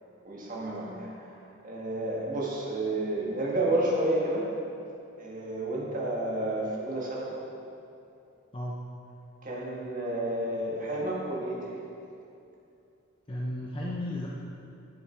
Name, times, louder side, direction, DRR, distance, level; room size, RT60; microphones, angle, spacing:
voice 1, 0.3-1.3 1.6-4.4 5.2-7.3 9.4-11.8, right 1 dB, 35° right, -4 dB, 1.8 m, -30 dB
voice 2, 13.3-14.3, left 1 dB, 25° left, -4 dB, 0.7 m, -33 dB
11.0 x 7.2 x 4.6 m, 2.6 s
head